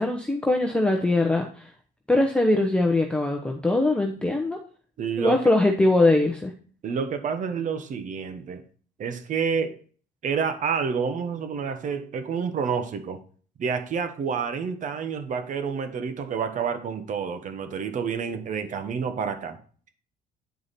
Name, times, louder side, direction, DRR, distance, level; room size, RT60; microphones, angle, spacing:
voice 1, 0.0-1.7 2.1-4.6 5.2-6.5, left 2 dB, 5° left, 2 dB, 0.9 m, -22 dB
voice 2, 5.0-5.4 6.8-8.6 9.0-9.8 10.2-13.2 13.6-19.6, right 6 dB, 50° right, 9 dB, 1.2 m, -29 dB
9.4 x 4.8 x 4.1 m, 0.43 s
cardioid pair, 110°, 17 cm